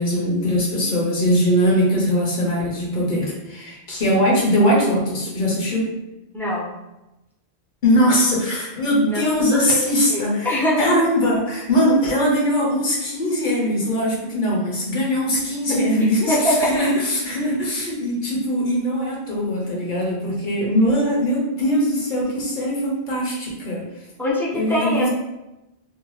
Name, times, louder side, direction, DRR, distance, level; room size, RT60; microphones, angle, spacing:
voice 1, 0.0-5.9 7.8-10.5 10.8-23.8 24.5-25.1, equal, 50° left, -3 dB, 0.9 m, -21 dB
voice 2, 6.3-6.7 9.1-9.8 10.1-10.9 15.7-15.8 16.3-16.7 24.2-25.1, left 1 dB, 5° left, -7 dB, 0.4 m, -23 dB
2.7 x 2.2 x 2.9 m, 0.97 s
omnidirectional pair, 1.1 m